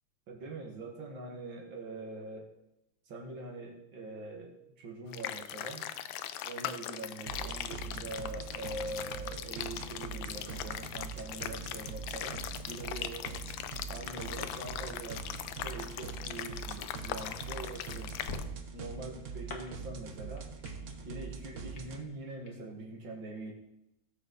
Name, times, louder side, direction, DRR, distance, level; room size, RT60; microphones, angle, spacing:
voice 1, 0.3-2.5 3.1-5.9 6.4-13.4 13.9-18.2 18.7-20.5 21.0-23.5, right 2 dB, 70° right, 0 dB, 2.6 m, -43 dB
sound 1, 5.1-18.4, left 11 dB, 75° left, 1.3 m, -40 dB
sound 2, 7.3-22.0, right 5 dB, 50° right, 1.0 m, -43 dB
sound 3, 17.7-22.5, left 3 dB, 50° left, 1.8 m, -50 dB
18.0 x 6.8 x 4.1 m, 0.85 s
omnidirectional pair, 2.2 m